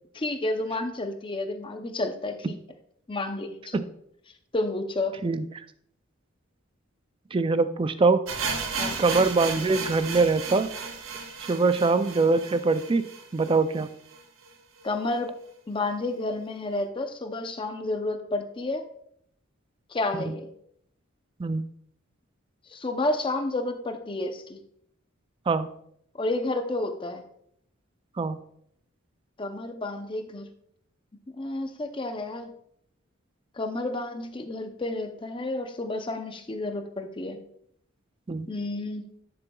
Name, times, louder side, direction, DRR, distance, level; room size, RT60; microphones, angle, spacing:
voice 1, 0.1-2.6 3.1-3.8 4.5-5.2 8.8-9.0 14.8-15.3 15.7-18.8 19.9-20.5 22.7-24.6 26.1-27.2 29.4-30.5 31.3-32.5 33.6-37.4 38.5-39.0, left 2 dB, 25° left, 7 dB, 0.6 m, -30 dB
voice 2, 7.3-8.2 9.0-10.7 11.5-13.1 13.3-13.9 20.2-20.3 21.4-21.7 25.5-25.7 28.2-28.4 38.3-38.5, right 3 dB, 25° right, 12 dB, 0.3 m, -23 dB
sound 1, 8.3-14.2 14.4-14.5 14.8-14.9 15.5-15.6, right 5 dB, 80° right, 1.0 m, -34 dB
10.5 x 6.9 x 2.3 m, 0.71 s
head